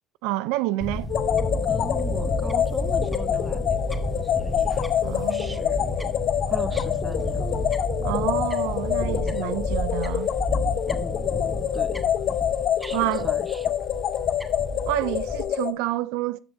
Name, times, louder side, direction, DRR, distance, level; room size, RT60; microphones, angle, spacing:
voice 1, 0.2-1.1 5.0-5.6 8.0-10.3 12.9-13.3 14.9-16.4, right 17 dB, 85° right, 0.3 m, -28 dB
Fowl / Bird, 0.8-15.4, left 1 dB, 5° left, 1.2 m, -31 dB
sound 1, 1.1-15.7, left 10 dB, 65° left, 0.7 m, -26 dB
voice 2, 1.6-5.9 6.4-7.6 9.2-9.4 10.9-12.0 12.8-13.7, right 2 dB, 20° right, 0.8 m, -40 dB
13.0 x 5.9 x 2.6 m
cardioid pair, 100°, 0 cm